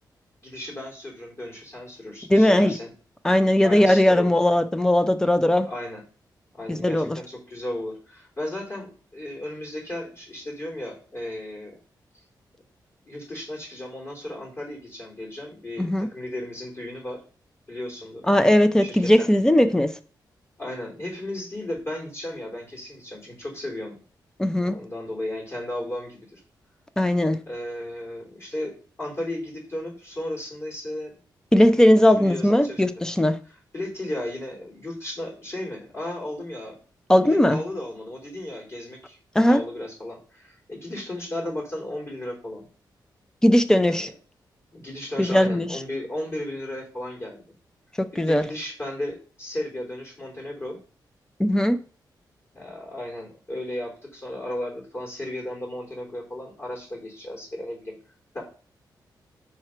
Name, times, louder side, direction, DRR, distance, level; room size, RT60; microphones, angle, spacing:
voice 1, 0.4-2.9 3.6-4.4 5.6-6.0 6.5-11.8 13.0-17.2 17.7-18.2 18.8-19.3 20.6-23.9 24.5-26.4 27.4-31.1 32.1-33.0 33.7-36.7 37.2-39.2 39.5-42.6 43.9-44.1 44.7-47.4 48.2-50.8 52.5-57.9 58.3-58.4, left 1 dB, 35° left, 3.1 m, -34 dB
voice 2, 2.3-2.7 3.2-5.7 6.7-7.2 15.8-16.1 18.3-19.9 24.4-24.8 27.0-27.4 31.5-33.4 37.1-37.6 39.3-39.6 43.4-44.1 45.2-45.7 48.2-48.4 51.4-51.8, left 1 dB, 10° left, 0.5 m, -18 dB
4.9 x 4.5 x 4.4 m
wide cardioid pair, 140°, 8 cm